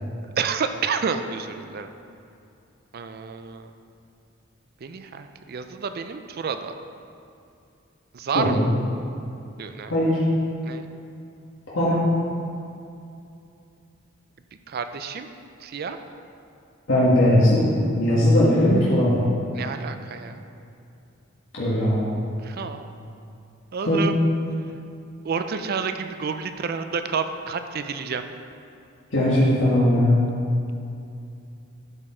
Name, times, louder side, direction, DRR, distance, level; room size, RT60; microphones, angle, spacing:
voice 1, 0.4-1.9 2.9-3.7 4.8-6.7 8.1-8.7 9.6-9.9 10.6-10.9 14.7-15.3 15.6-16.0 19.5-20.4 22.4-22.8 23.7-24.2 25.2-28.2, right 5 dB, 50° right, 8 dB, 0.4 m, -29 dB
voice 2, 8.3-8.7 9.9-10.2 11.7-12.0 16.9-17.6 17.9-19.2 21.5-22.1 23.9-24.0 29.1-30.3, left 1 dB, 65° left, -8 dB, 1.7 m, -19 dB
12.0 x 4.4 x 4.3 m, 2.6 s
head